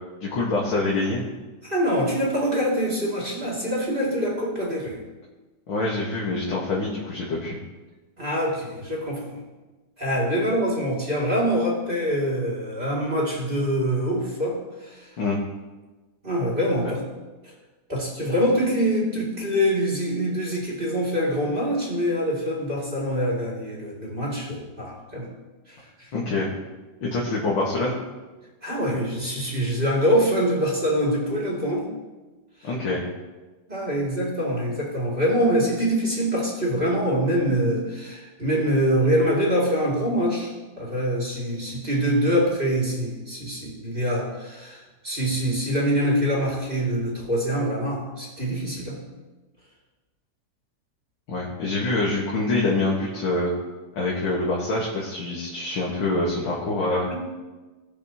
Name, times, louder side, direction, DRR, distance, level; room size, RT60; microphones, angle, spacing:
voice 1, 0.2-1.2 5.7-7.6 15.2-15.4 26.1-26.5 27.0-27.9 32.6-33.0 51.3-53.5 54.0-57.1, left 2 dB, 80° left, -5 dB, 2.5 m, -25 dB
voice 2, 1.6-5.0 8.2-9.4 10.0-15.1 16.2-17.0 17.4-17.5 17.9-25.3 25.7-26.1 28.6-31.9 32.6-32.7 33.7-49.0 57.1-57.3, equal, 25° right, -4 dB, 2.8 m, -24 dB
18.0 x 7.3 x 3.0 m, 1.2 s
omnidirectional pair, 2.1 m